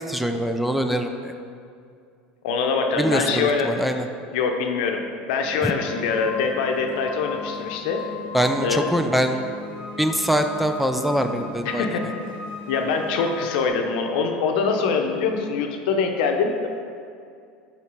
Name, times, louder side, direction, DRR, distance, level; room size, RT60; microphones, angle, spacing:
voice 1, 0.1-1.3 3.0-4.1 5.6-5.7 8.3-9.4 10.0-11.9, equal, ahead, 6 dB, 0.4 m, -23 dB
voice 2, 2.4-3.7 4.3-5.0 5.3-8.0 8.6-8.9 11.6-12.2 12.7-16.7, left 5 dB, 75° left, 4 dB, 0.7 m, -24 dB
sound 1, 5.4-13.7, left 3 dB, 45° right, 1.7 m, -36 dB
5.5 x 4.5 x 5.3 m, 2.4 s
hypercardioid pair, 95°, 5 cm